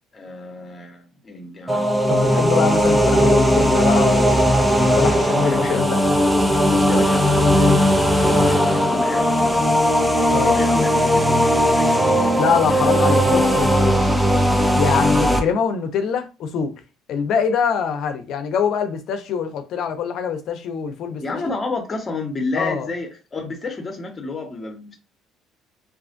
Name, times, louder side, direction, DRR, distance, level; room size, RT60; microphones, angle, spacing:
voice 1, 0.1-2.9 5.4-5.8 6.7-7.8 8.2-9.8 10.2-12.0 12.7-13.2 21.2-25.0, left 3 dB, 30° left, 1.0 m, -31 dB
sound 1, 1.7-15.4, equal, 5° right, 0.6 m, -17 dB
voice 2, 2.1-4.4 4.9-6.0 10.3-10.6 12.2-14.1 14.7-16.7 17.1-21.4 22.5-22.9, left 6 dB, 65° left, 0.6 m, -24 dB
2.5 x 2.4 x 2.5 m
supercardioid pair, 85°, 0 cm